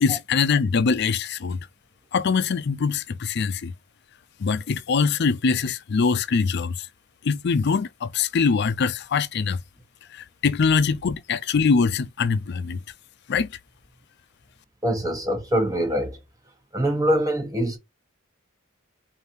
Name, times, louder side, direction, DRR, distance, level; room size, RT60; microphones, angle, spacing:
voice 1, 0.0-1.6 2.1-3.7 4.4-6.9 7.2-9.6 10.1-12.8 13.3-13.5, left 5 dB, 55° left, 0.4 m, -23 dB
voice 2, 14.8-16.2 16.7-17.8, equal, 15° right, 1.2 m, -24 dB
5.0 x 2.7 x 2.7 m
head